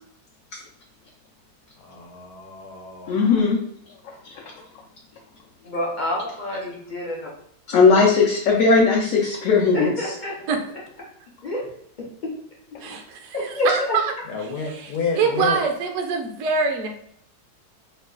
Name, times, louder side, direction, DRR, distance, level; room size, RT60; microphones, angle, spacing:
voice 1, 1.8-3.2 14.3-15.6, left 5 dB, 90° left, 1 dB, 1.3 m, -30 dB
voice 2, 3.1-3.6 4.0-4.4 7.7-9.9, left 4 dB, 70° left, -3 dB, 0.9 m, -18 dB
voice 3, 5.6-7.3 9.7-10.4 11.4-11.7 12.0-12.4 12.8-12.9 13.3-14.0, left 1 dB, 55° left, -3 dB, 0.5 m, -27 dB
voice 4, 12.8-14.0 14.6-16.9, right 5 dB, 65° right, 3 dB, 0.8 m, -24 dB
3.0 x 2.2 x 3.7 m, 0.66 s
omnidirectional pair, 1.6 m